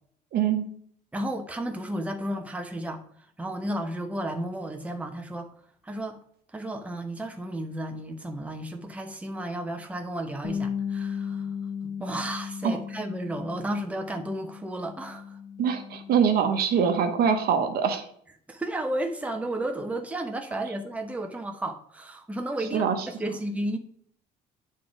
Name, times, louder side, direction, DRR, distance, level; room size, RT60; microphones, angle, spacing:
voice 1, 0.3-0.6 12.6-12.8 15.6-18.0 22.7-23.0, right 7 dB, 65° right, 6 dB, 1.1 m, -23 dB
voice 2, 1.1-3.0 3.4-5.5 5.8-6.2 6.5-11.5 11.8-15.4 18.5-23.8, right 1 dB, 10° right, 4 dB, 0.9 m, -33 dB
Bass guitar, 10.4-16.7, left 7 dB, 40° left, 1.5 m, -36 dB
8.4 x 3.7 x 4.9 m, 0.63 s
cardioid pair, 110°, 17 cm